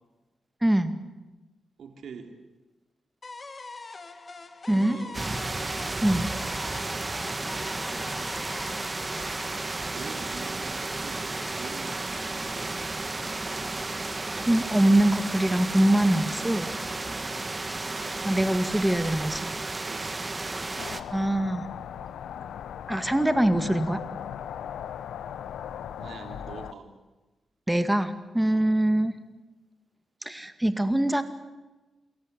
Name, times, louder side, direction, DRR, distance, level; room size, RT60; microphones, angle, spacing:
voice 1, 0.6-1.0 4.7-5.0 6.0-6.3 14.5-16.7 18.2-19.5 21.1-21.7 22.9-24.0 27.7-29.1 30.2-31.2, right 1 dB, 10° right, 9 dB, 2.1 m, -23 dB
voice 2, 1.8-2.3 4.7-5.3 9.9-12.8 19.8-20.4 26.0-26.9 28.5-28.8, right 5 dB, 75° right, 5 dB, 3.2 m, -45 dB
sound 1, 3.2-10.2, left 3 dB, 40° left, 1.9 m, -43 dB
sound 2, 5.1-21.0, right 2 dB, 25° right, 1.7 m, -33 dB
sound 3, 20.8-26.7, left 9 dB, 85° left, 0.8 m, -38 dB
28.5 x 14.0 x 10.0 m, 1.1 s
cardioid pair, 70°, 0 cm